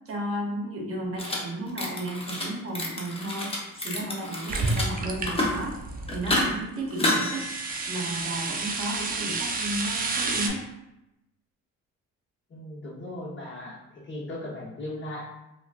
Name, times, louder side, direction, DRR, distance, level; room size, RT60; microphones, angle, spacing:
voice 1, 0.1-3.6 3.8-5.8 6.1-7.5 7.9-10.6, right 1 dB, 50° right, -2 dB, 0.8 m, -33 dB
sound 1, 1.2-1.4 1.7-2.5 2.8-4.9 5.2-5.6 6.1-6.5 6.9-8.3, left 1 dB, 20° left, 0.7 m, -29 dB
sound 2, 4.5-6.5 7.0-10.5, right 3 dB, 30° right, 0.5 m, -31 dB
voice 2, 12.5-15.2, left 1 dB, 40° left, -5 dB, 1.0 m, -38 dB
3.6 x 2.3 x 2.5 m, 0.88 s
cardioid pair, 90°, 30 cm